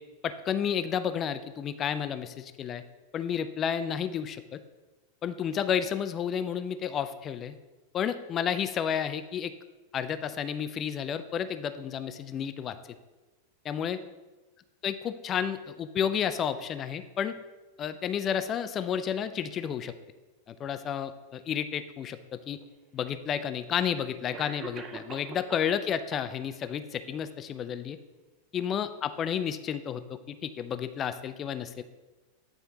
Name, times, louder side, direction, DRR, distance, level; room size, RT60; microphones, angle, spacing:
voice 1, 0.2-2.8 3.1-4.6 5.2-7.5 7.9-9.5 9.9-12.8 13.6-14.0 14.8-17.4 17.8-19.9 20.5-22.6 22.9-28.0 28.5-31.8, left 8 dB, 30° left, 11 dB, 0.4 m, -31 dB
Cough, 22.6-22.7 23.7-23.8 24.3-25.7 26.1-26.7, right 5 dB, 25° right, 0.6 m, -43 dB
9.3 x 4.4 x 2.8 m, 1.2 s
figure-of-eight pair, 90°, 0 cm